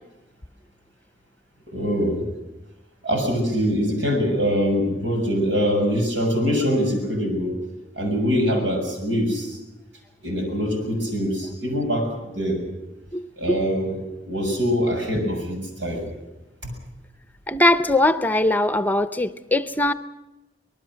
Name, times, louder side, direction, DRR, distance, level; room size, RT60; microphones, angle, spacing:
voice 1, 1.7-2.2 3.0-7.6 8.0-9.6 10.2-12.6 13.4-16.0 16.6-16.7, equal, 90° right, 3 dB, 7.0 m, -23 dB
voice 2, 17.5-19.9, left 1 dB, 10° left, 11 dB, 0.6 m, -20 dB
26.0 x 19.5 x 6.4 m, 0.99 s
head